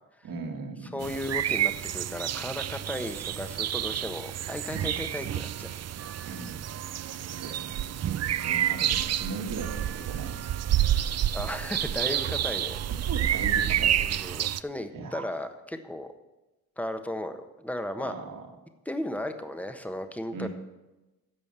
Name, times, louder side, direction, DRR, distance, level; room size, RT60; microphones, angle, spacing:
voice 1, 0.2-1.1 6.2-6.6 7.3-7.9 8.4-10.5 12.9-14.5 14.9-15.3 18.0-18.5 20.3-20.5, right 4 dB, 65° right, 3 dB, 2.3 m, -38 dB
voice 2, 0.9-5.7 11.3-12.8 14.0-16.1 16.8-18.1 18.8-20.5, left 1 dB, 5° left, 7 dB, 1.3 m, -35 dB
sound 1, 1.0-14.6, right 11 dB, 45° right, 0.5 m, -29 dB
14.5 x 5.2 x 7.5 m, 1.1 s
cardioid pair, 70°, 37 cm